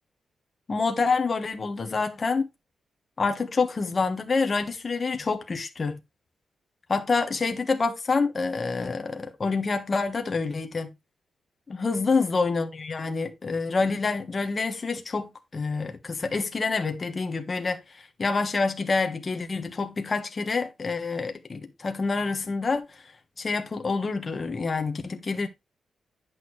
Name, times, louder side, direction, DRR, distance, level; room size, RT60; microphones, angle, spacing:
voice 1, 0.7-2.5 3.2-6.0 6.9-10.9 11.7-22.9 23.4-25.5, left 4 dB, 30° left, 1.2 m, -27 dB
10.5 x 6.3 x 3.2 m
wide cardioid pair, 155°, 0 cm